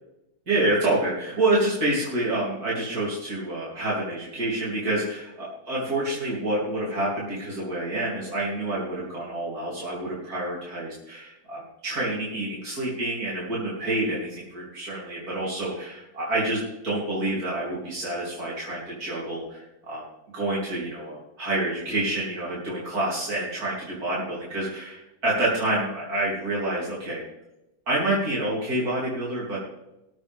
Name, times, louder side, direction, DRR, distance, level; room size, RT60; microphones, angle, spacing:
voice 1, 0.5-20.0 20.3-27.2 27.9-29.6, right 1 dB, 65° right, -6 dB, 3.9 m, -28 dB
19.0 x 8.1 x 3.6 m, 0.90 s
omnidirectional pair, 1.7 m